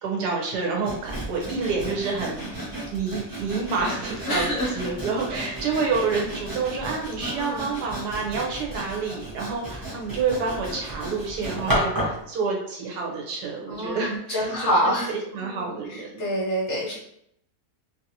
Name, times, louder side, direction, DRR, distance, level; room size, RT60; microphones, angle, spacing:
voice 1, 0.0-4.5 4.7-16.2, right 4 dB, 90° right, -1 dB, 1.4 m, -28 dB
Sawing, 0.8-12.2, right 1 dB, 20° right, 0.5 m, -33 dB
voice 2, 4.3-4.7 7.2-7.7 13.7-15.1 15.4-16.9, equal, 55° left, -4 dB, 0.9 m, -27 dB
2.9 x 2.7 x 2.8 m, 0.72 s
omnidirectional pair, 1.7 m